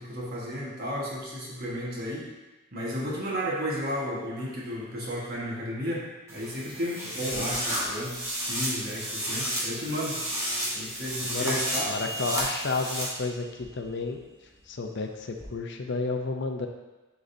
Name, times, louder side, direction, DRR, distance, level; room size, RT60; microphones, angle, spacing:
voice 1, 0.0-2.3 2.7-8.2 8.5-10.3 10.7-12.2, equal, 45° right, -5 dB, 1.5 m, -33 dB
sound 1, 6.3-13.0, equal, 15° right, 1.2 m, -32 dB
sound 2, 7.5-15.5, right 1 dB, 5° left, 1.2 m, -44 dB
voice 2, 11.9-13.5 13.7-14.2 14.7-16.7, left 3 dB, 55° left, 3 dB, 0.6 m, -31 dB
9.9 x 3.9 x 2.7 m, 1.2 s
head